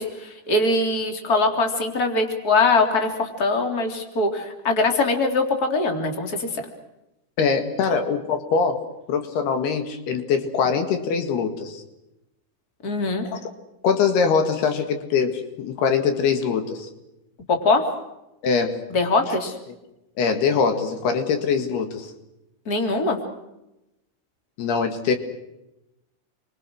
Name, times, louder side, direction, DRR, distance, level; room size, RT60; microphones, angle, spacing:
voice 1, 0.0-6.6 12.8-13.3 17.5-17.8 18.9-19.5 22.7-23.2, left 3 dB, 25° left, 4 dB, 3.4 m, -22 dB
voice 2, 7.4-11.8 13.3-13.4 13.8-16.9 18.4-18.8 20.2-22.1 24.6-25.2, left 5 dB, 75° left, 7 dB, 3.9 m, -23 dB
29.0 x 24.0 x 6.4 m, 0.91 s
omnidirectional pair, 4.7 m